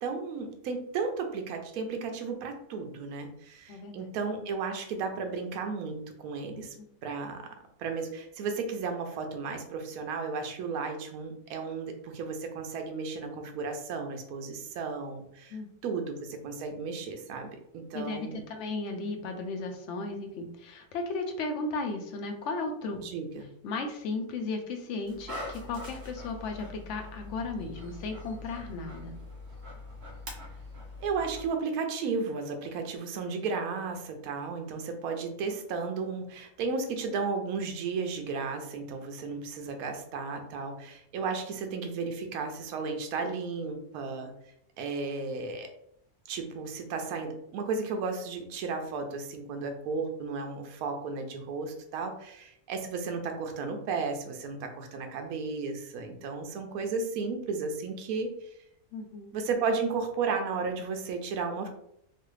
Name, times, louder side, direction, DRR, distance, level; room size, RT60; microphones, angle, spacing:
voice 1, 0.0-6.7 7.0-18.4 23.0-23.5 31.0-44.3 44.8-45.7 46.3-58.5 59.3-61.7, right 4 dB, 75° right, 5 dB, 1.0 m, -34 dB
voice 2, 3.7-4.1 6.5-6.8 15.5-15.7 17.9-23.0 23.6-29.2 58.9-59.4, left 3 dB, 65° left, 4 dB, 0.8 m, -35 dB
Dog, 25.0-31.5, left 2 dB, 55° right, 0.9 m, -43 dB
3.1 x 2.4 x 3.1 m, 0.74 s
omnidirectional pair, 1.6 m